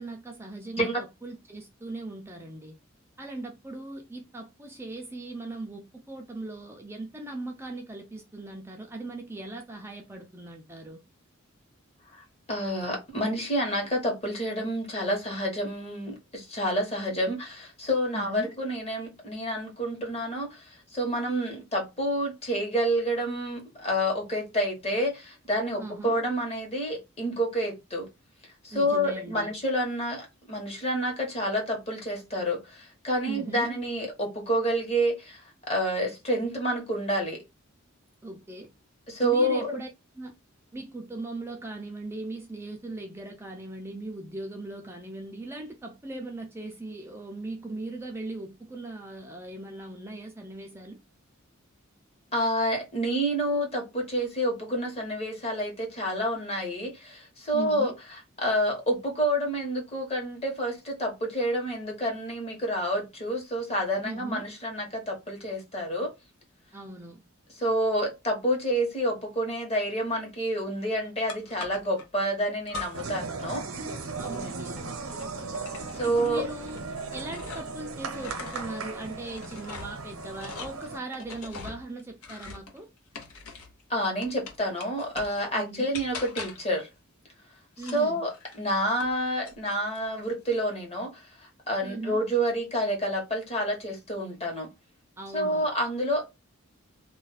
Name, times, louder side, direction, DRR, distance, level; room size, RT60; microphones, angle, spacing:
voice 1, 0.0-2.8 3.2-11.0 18.1-18.5 25.8-26.2 28.7-29.5 33.3-33.7 38.2-38.7 39.2-39.9 40.2-40.3 40.7-51.0 57.5-58.0 64.0-64.5 66.7-67.2 74.2-75.0 76.0-76.8 77.1-82.9 85.5-85.9 87.8-88.2 91.8-92.2 95.2-95.7, right 2 dB, 10° right, 0.4 m, -39 dB
voice 2, 12.1-28.1 28.4-37.4 39.1-39.8 52.3-57.9 58.4-66.1 67.6-73.6 75.9-76.5 83.9-86.9 87.8-94.7 95.3-96.3, equal, 30° left, 1.1 m, -29 dB
sound 1, 71.3-72.1 72.7-73.3 73.5-77.8 78.1-83.8 84.2-85.4 85.9-86.8 87.8-89.2 89.4-90.0, left 4 dB, 85° left, 0.8 m, -43 dB
sound 2, 72.9-81.0, right 3 dB, 90° right, 0.7 m, -37 dB
2.4 x 2.2 x 4.0 m
head